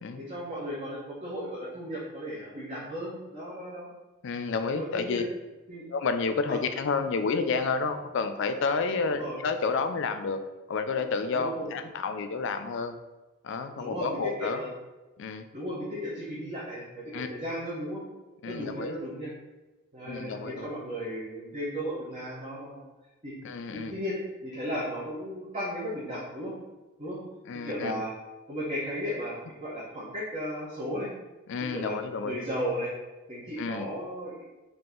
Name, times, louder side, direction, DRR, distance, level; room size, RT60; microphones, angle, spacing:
voice 1, 0.2-3.9 4.7-5.2 5.7-5.8 6.5-6.6 9.0-9.4 11.3-11.7 13.8-14.7 15.5-18.0 18.4-19.3 19.9-22.8 23.2-23.3 23.7-26.5 27.0-27.2 27.6-28.1 28.5-29.3 29.6-31.1 31.6-31.9 32.2-32.9 33.3-34.6, equal, 30° right, -9 dB, 1.0 m, -35 dB
voice 2, 4.2-5.2 5.9-10.4 10.7-13.0 13.4-14.6 15.2-15.4 17.1-17.3 18.4-18.9 20.0-20.7 23.4-23.9 27.5-28.0 31.5-32.4 33.6-33.9, left 4 dB, 60° left, 8 dB, 0.3 m, -30 dB
3.8 x 2.8 x 3.7 m, 1.1 s
head